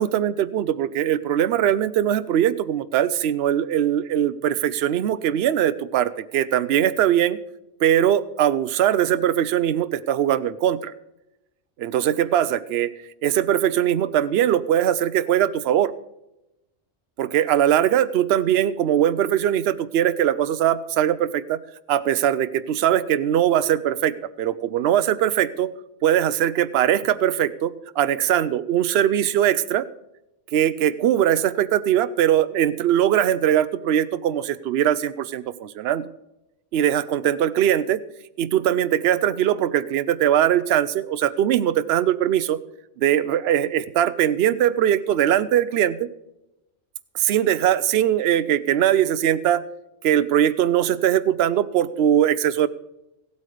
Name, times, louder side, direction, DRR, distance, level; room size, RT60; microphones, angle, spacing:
voice 1, 0.0-7.4 7.8-10.9 11.8-12.9 13.2-15.9 17.2-21.6 21.9-25.7 26.0-29.9 30.5-36.1 36.7-38.0 38.4-42.6 43.0-46.1 47.1-49.6 50.0-52.7, right 11 dB, 60° right, 14 dB, 0.8 m, -21 dB
15.5 x 8.4 x 4.9 m, 0.90 s
omnidirectional pair, 1.3 m